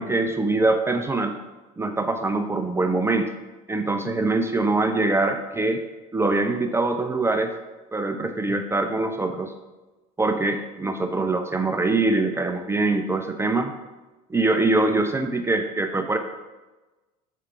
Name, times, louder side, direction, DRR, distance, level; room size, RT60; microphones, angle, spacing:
voice 1, 0.0-1.4 1.8-3.3 3.7-5.8 6.1-7.5 7.9-9.5 10.2-13.7 14.3-16.2, right 2 dB, 10° right, 5 dB, 0.5 m, -23 dB
7.9 x 4.6 x 3.7 m, 1.2 s
hypercardioid pair, 85°, 20 cm